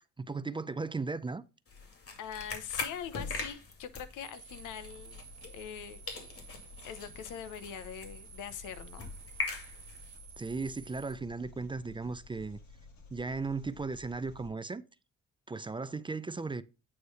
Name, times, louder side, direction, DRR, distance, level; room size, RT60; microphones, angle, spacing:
voice 1, 0.2-1.4 10.4-12.6 13.1-14.8 15.5-16.6, right 4 dB, 15° right, 0.4 m, -36 dB
sound 1, 1.7-5.8 6.1-10.2, left 4 dB, 50° left, 2.4 m, -42 dB
voice 2, 2.2-5.2 5.5-6.3 6.8-9.1, left 9 dB, 85° left, 0.9 m, -43 dB
sound 2, 4.2-11.1, right 7 dB, 55° right, 1.5 m, -54 dB
Engine, 4.5-14.5, left 3 dB, 70° left, 2.3 m, -53 dB
8.5 x 3.2 x 5.4 m
cardioid pair, 90°, 30 cm